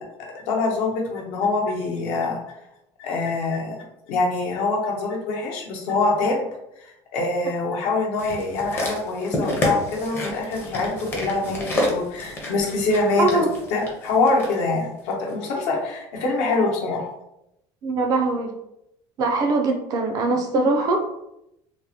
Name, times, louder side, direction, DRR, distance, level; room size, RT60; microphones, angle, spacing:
voice 1, 0.3-2.4 3.0-3.7 4.1-6.4 6.8-13.4 13.7-17.1, left 3 dB, 75° left, -1 dB, 0.9 m, -24 dB
sound 1, 8.2-14.5 15.3-15.4, left 1 dB, 20° left, 0.6 m, -29 dB
voice 2, 13.2-13.5 17.8-18.5 19.2-21.0, right 3 dB, 35° right, 4 dB, 0.3 m, -22 dB
3.4 x 2.1 x 2.7 m, 0.83 s
cardioid pair, 175°, 11 cm